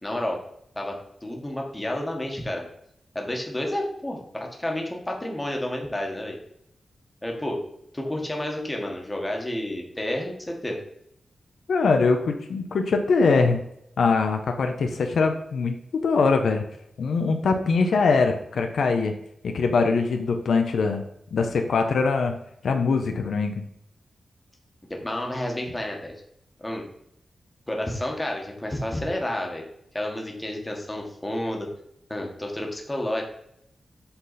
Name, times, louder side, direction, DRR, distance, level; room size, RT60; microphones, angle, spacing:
voice 1, 0.0-0.4 0.7-2.7 3.1-6.4 7.2-7.6 7.9-10.8 24.9-26.1 26.6-26.9 27.7-29.6 29.9-31.7 32.1-33.2, left 1 dB, 15° left, 1 dB, 1.4 m, -30 dB
voice 2, 11.7-13.6 14.0-15.8 16.0-16.6 17.0-19.1 19.4-21.0 21.3-22.3 22.6-23.6, left 4 dB, 75° left, 5 dB, 0.7 m, -22 dB
7.9 x 4.0 x 4.1 m, 0.75 s
wide cardioid pair, 130°, 0 cm